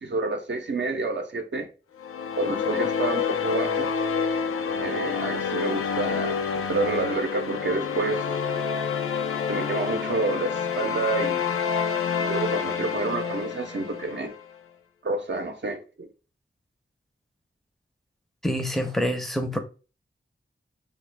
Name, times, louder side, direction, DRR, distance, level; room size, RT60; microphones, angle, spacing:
voice 1, 0.0-1.7 2.4-3.9 4.8-8.2 9.5-11.4 12.2-14.3 15.0-16.1, right 3 dB, 55° right, 0.6 m, -29 dB
sound 1, 2.0-14.4, left 6 dB, 85° left, 0.4 m, -28 dB
voice 2, 18.4-19.6, equal, ahead, 0.6 m, -26 dB
3.0 x 2.3 x 3.2 m
wide cardioid pair, 60°, 21 cm